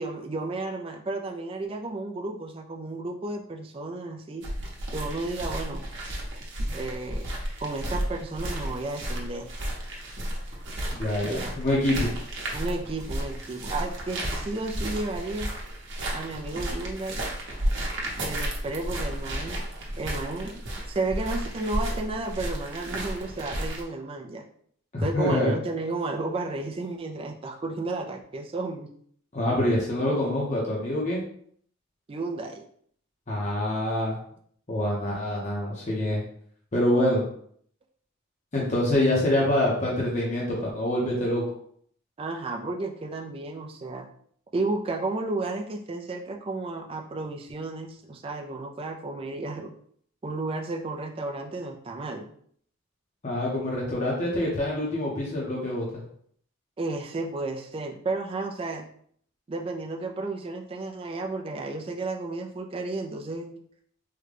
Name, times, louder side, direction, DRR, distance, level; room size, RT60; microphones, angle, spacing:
voice 1, 0.0-4.5 4.9-5.8 6.7-7.3 7.6-9.5 11.3-11.6 12.5-15.5 16.1-17.2 18.2-19.6 20.0-20.6 20.9-24.5 25.0-28.9 32.1-32.6 42.2-44.1 44.5-49.7 50.2-52.3 56.8-58.9 59.5-63.6, right 2 dB, 25° right, 2 dB, 0.3 m, -32 dB
sound 1, 4.4-23.8, right 1 dB, 55° right, 0.8 m, -33 dB
voice 2, 10.9-12.1 24.9-25.5 29.3-31.2 33.3-34.2 34.7-36.2 36.7-37.2 38.5-41.4 53.2-55.9, left 1 dB, 35° left, -4 dB, 0.7 m, -25 dB
3.6 x 2.2 x 3.3 m, 0.62 s
head